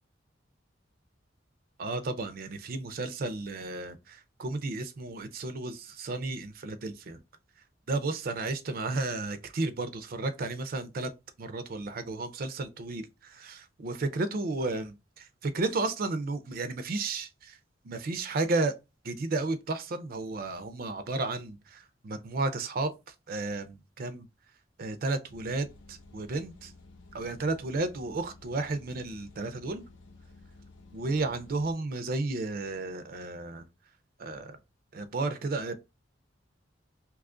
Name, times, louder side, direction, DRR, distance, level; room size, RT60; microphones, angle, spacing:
voice 1, 1.8-7.2 7.9-11.1 11.4-17.6 17.8-18.7 19.0-24.3 24.8-26.7 27.1-29.8 30.9-33.7 34.2-34.6 34.9-35.7, right 3 dB, 50° right, 0.5 m, -33 dB
sound 1, 25.3-31.8, left 3 dB, 85° left, 0.7 m, -53 dB
2.9 x 2.4 x 3.7 m
head